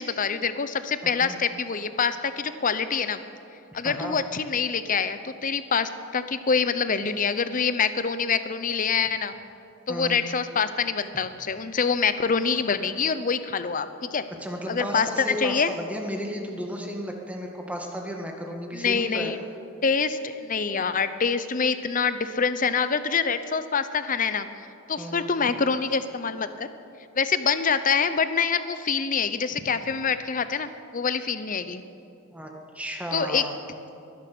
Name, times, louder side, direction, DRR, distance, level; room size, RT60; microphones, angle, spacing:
voice 1, 0.0-3.2 3.7-9.3 9.9-14.2 14.7-15.7 18.7-19.4 19.8-24.5 24.9-26.7 27.1-31.8 33.1-33.4, left 5 dB, 40° left, 12 dB, 0.7 m, -25 dB
voice 2, 3.8-4.2 9.9-10.2 14.4-19.3 25.0-25.3 32.3-33.5, equal, 5° right, 1 dB, 1.7 m, -34 dB
22.0 x 10.5 x 6.1 m, 2.6 s
head